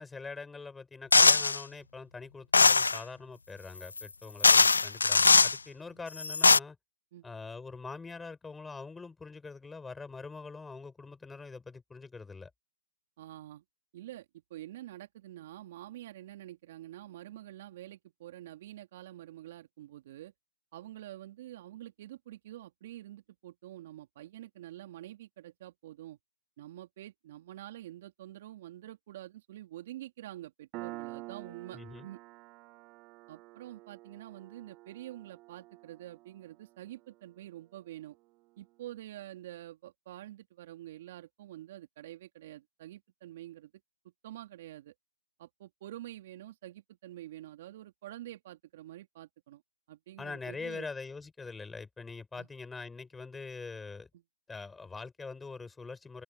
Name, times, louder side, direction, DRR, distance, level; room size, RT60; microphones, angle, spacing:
voice 1, 0.0-6.8 7.2-12.5 31.7-32.1 50.2-54.1 54.5-56.2, left 4 dB, 5° left, 5.3 m, -43 dB
sound 1, 1.1-1.6 2.5-3.0 4.0-4.1 4.4-5.6 6.2-6.6, left 4 dB, 90° left, 0.4 m, -21 dB
voice 2, 13.2-13.6 13.9-20.3 20.7-26.2 26.6-32.2 33.3-38.2 38.6-43.7 44.2-44.9 45.4-49.6 49.9-50.9 52.3-52.5 54.1-54.2, right 14 dB, 45° right, 2.5 m, -47 dB
Piano, 30.7-37.9, right 20 dB, 25° right, 2.1 m, -48 dB
open air
hypercardioid pair, 140°, 0 cm